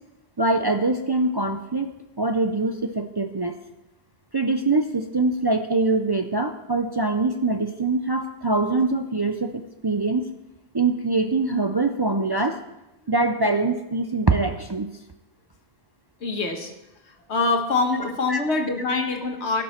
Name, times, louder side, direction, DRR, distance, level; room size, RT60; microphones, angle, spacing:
voice 1, 0.4-1.9 2.2-3.6 4.3-10.3 10.7-12.6 13.1-14.9 18.3-18.4, right 3 dB, 35° right, 5 dB, 0.4 m, -23 dB
voice 2, 16.2-16.7 17.3-19.6, left 3 dB, 85° left, 4 dB, 1.6 m, -24 dB
16.5 x 6.1 x 4.4 m, 0.96 s
omnidirectional pair, 1.1 m